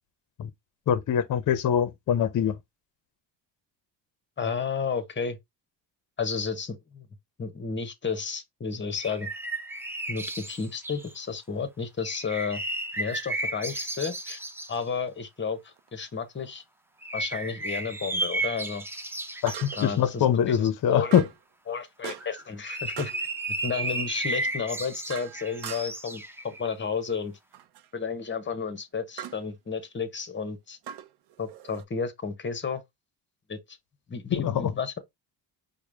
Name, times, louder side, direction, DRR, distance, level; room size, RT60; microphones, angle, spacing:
voice 1, 0.9-2.6 19.4-21.3 34.3-34.7, left 9 dB, 45° left, 0.7 m, -23 dB
voice 2, 4.4-5.4 6.2-7.1 7.4-9.3 10.1-12.6 13.0-14.4 14.7-16.6 17.1-18.8 19.7-21.1 21.7-23.3 23.6-27.4 27.9-30.8 31.4-32.8 33.5-33.8 34.1-34.9, left 5 dB, 25° left, 0.9 m, -32 dB
sound 1, 9.0-11.2 12.0-14.8 17.0-20.0 22.2-26.7, right 2 dB, 5° right, 0.6 m, -33 dB
sound 2, 15.8-15.9 19.5-20.0 21.1-21.4 22.0-22.5 23.0-23.3 24.5-26.1 27.5-27.9 29.2-29.4 30.8-31.8, right 11 dB, 60° right, 0.6 m, -41 dB
4.7 x 2.2 x 3.4 m
cardioid pair, 85°, 46 cm